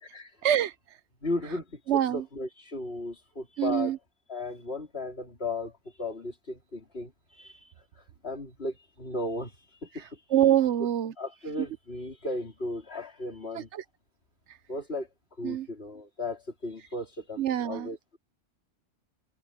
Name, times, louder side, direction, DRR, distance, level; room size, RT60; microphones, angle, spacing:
voice 1, 0.4-0.7 1.9-2.2 3.6-4.0 10.3-11.1 11.6-11.7 13.6-13.8 15.4-15.7 17.4-17.9, right 11 dB, 85° right, 1.0 m, -25 dB
voice 2, 1.2-4.0 4.3-5.7 6.0-7.1 7.4-7.6 8.2-9.5 9.8-10.0 11.2-13.7 14.7-15.1 15.4-18.2, left 2 dB, 60° left, 3.9 m, -35 dB
omnidirectional pair, 1.2 m